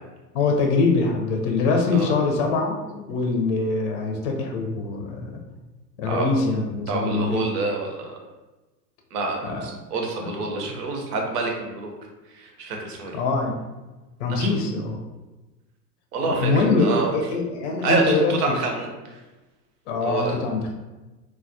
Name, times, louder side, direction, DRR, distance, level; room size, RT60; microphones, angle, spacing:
voice 1, 0.3-5.4 6.0-7.5 9.4-9.6 10.2-10.3 13.1-13.6 14.2-15.0 16.2-18.3 19.9-20.7, left 3 dB, 50° left, 2 dB, 0.6 m, -23 dB
voice 2, 6.9-8.1 9.1-11.9 12.3-13.2 14.3-14.5 16.1-17.1 17.8-19.2 20.0-20.4, right 3 dB, 65° right, 1 dB, 0.8 m, -27 dB
2.2 x 2.1 x 2.6 m, 1.1 s
hypercardioid pair, 100°, 50 cm